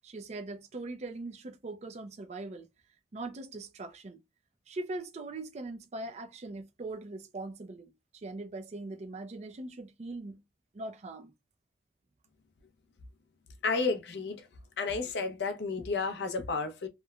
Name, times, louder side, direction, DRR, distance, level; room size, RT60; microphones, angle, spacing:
voice 1, 0.0-2.7 3.1-4.2 4.7-10.4 10.7-11.3, right 2 dB, 40° right, 0.4 m, -41 dB
voice 2, 13.6-14.5 14.8-16.9, left 4 dB, 65° left, 0.5 m, -31 dB
2.9 x 2.1 x 2.3 m
head